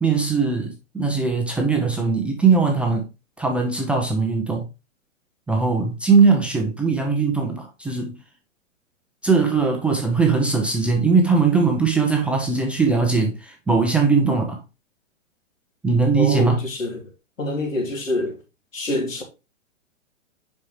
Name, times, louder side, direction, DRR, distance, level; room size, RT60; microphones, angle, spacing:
voice 1, 0.0-3.1 3.4-4.6 5.5-8.2 9.2-14.6 15.8-16.6, right 4 dB, 5° right, 0.5 m, -20 dB
voice 2, 16.2-17.0 17.4-18.4 18.7-19.2, left 1 dB, 80° left, 2.7 m, -26 dB
7.5 x 5.4 x 3.1 m
hypercardioid pair, 125°, 38 cm